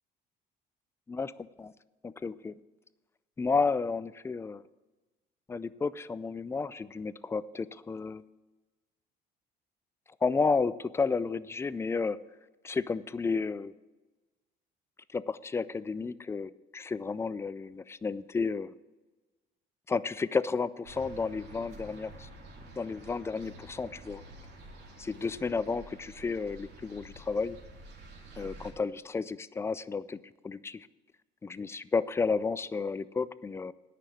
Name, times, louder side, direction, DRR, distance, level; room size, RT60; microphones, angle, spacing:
voice 1, 1.1-1.7 2.0-2.5 3.4-4.6 5.5-8.2 10.2-12.2 12.6-13.7 15.1-18.7 19.9-22.3 22.8-24.2 25.0-27.6 28.4-30.2 30.4-30.9 31.4-33.7, left 4 dB, 15° left, 17 dB, 0.3 m, -32 dB
sound 1, 20.8-28.7, right 1 dB, 90° right, 2.5 m, -49 dB
9.8 x 5.9 x 8.6 m, 1.2 s
cardioid pair, 110°, 17 cm